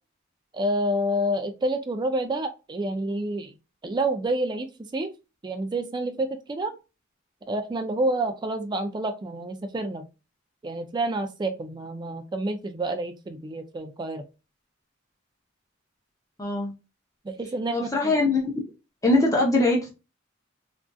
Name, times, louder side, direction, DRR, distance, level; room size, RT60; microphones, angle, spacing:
voice 1, 0.5-3.5 3.8-5.1 5.4-6.7 7.5-10.1 10.6-14.2 17.2-17.9, right 1 dB, 20° right, 6 dB, 0.4 m, -28 dB
voice 2, 16.4-16.7 17.7-18.5 19.0-19.9, left 2 dB, 15° left, -1 dB, 0.7 m, -22 dB
3.6 x 2.5 x 2.3 m, 0.28 s
head